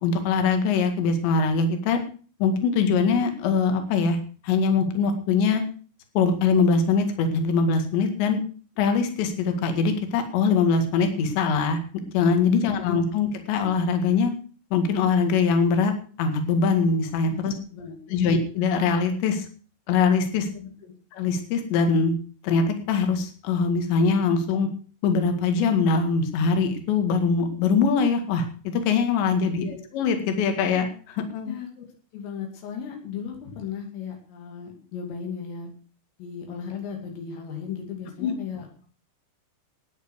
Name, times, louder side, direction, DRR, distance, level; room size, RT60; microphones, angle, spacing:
voice 1, 0.0-2.0 2.4-5.6 6.2-8.4 8.8-14.3 14.7-15.9 16.2-17.5 18.1-19.5 19.9-20.5 21.1-22.2 22.4-24.7 25.0-29.7 29.9-31.5 38.2-38.3, left 5 dB, 65° left, 6 dB, 4.1 m, -22 dB
voice 2, 12.6-13.1 17.2-18.3 20.4-20.9 29.6-29.8 31.5-31.9 32.1-35.7 36.2-38.9, left 7 dB, 90° left, 1 dB, 5.3 m, -37 dB
13.5 x 9.7 x 6.3 m, 0.41 s
omnidirectional pair, 5.7 m